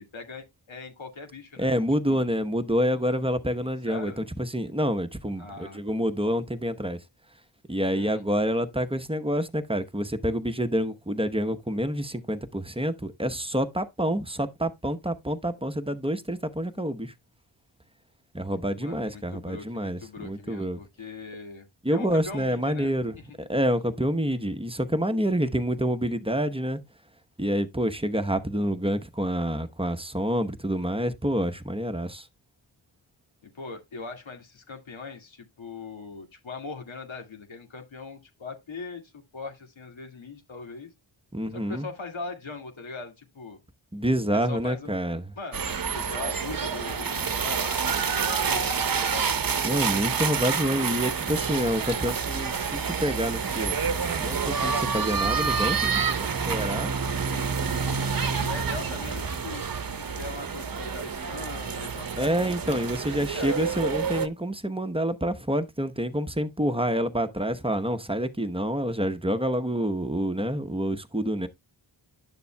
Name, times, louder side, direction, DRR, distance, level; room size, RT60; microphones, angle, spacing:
voice 1, 0.0-1.7 2.1-2.2 3.9-4.2 5.4-5.8 7.9-8.2 18.8-23.2 33.5-40.9 41.5-43.6 44.3-44.9 45.4-49.4 56.2-57.3 58.3-59.6 59.9-62.8 63.3-63.7, left 4 dB, 75° left, 2.1 m, -40 dB
voice 2, 1.6-7.0 7.7-17.1 18.3-20.8 21.8-23.2 23.5-26.8 27.4-32.3 41.3-41.9 43.9-45.3 49.6-53.8 54.2-56.9 62.2-71.5, equal, 10° right, 0.9 m, -27 dB
sound 1, 45.5-64.3, right 5 dB, 45° right, 0.9 m, -28 dB
11.0 x 6.8 x 2.2 m
cardioid pair, 50°, 47 cm